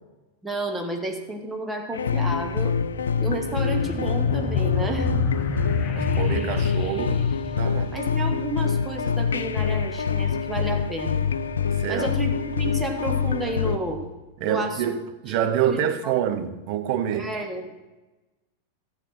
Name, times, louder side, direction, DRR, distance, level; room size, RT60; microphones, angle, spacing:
voice 1, 0.4-2.8 3.2-5.3 6.6-6.7 7.9-11.2 11.9-14.0 14.4-14.9 15.3-15.4 15.7-16.1 17.1-17.8, right 1 dB, 10° right, 1.5 m, -31 dB
sound 1, 1.9-13.8, left 6 dB, 70° left, 0.4 m, -25 dB
sound 2, 1.9-14.1, right 2 dB, 80° right, 1.9 m, -42 dB
sound 3, 3.5-8.4, left 6 dB, 35° left, 0.7 m, -30 dB
voice 2, 5.4-7.2 7.5-7.9 11.8-12.1 14.4-17.3, right 9 dB, 45° right, 0.7 m, -27 dB
13.0 x 8.2 x 4.3 m
figure-of-eight pair, 90°, 0 cm